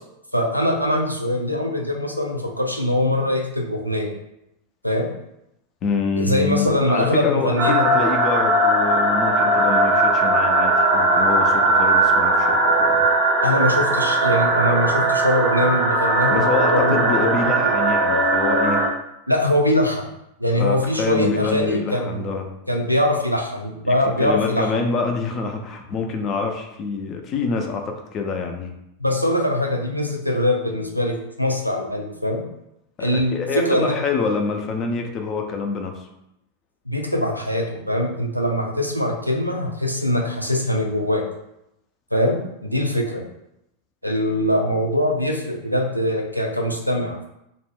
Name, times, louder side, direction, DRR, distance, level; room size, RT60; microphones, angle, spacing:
voice 1, 0.3-4.1 4.8-5.1 6.2-8.0 13.4-17.7 19.3-20.1 20.4-22.3 22.7-24.9 29.0-32.5 33.0-34.0 36.9-41.2 42.1-43.2 44.0-47.2, left 1 dB, 90° right, 1 dB, 0.4 m, -22 dB
voice 2, 5.8-13.1 16.3-18.8 20.5-22.5 23.8-28.7 33.0-36.1, left 4 dB, 30° left, 3 dB, 0.4 m, -26 dB
sound 1, 7.6-18.9, right 2 dB, 35° right, 0.5 m, -19 dB
2.4 x 2.1 x 3.3 m, 0.84 s
figure-of-eight pair, 90°, 0 cm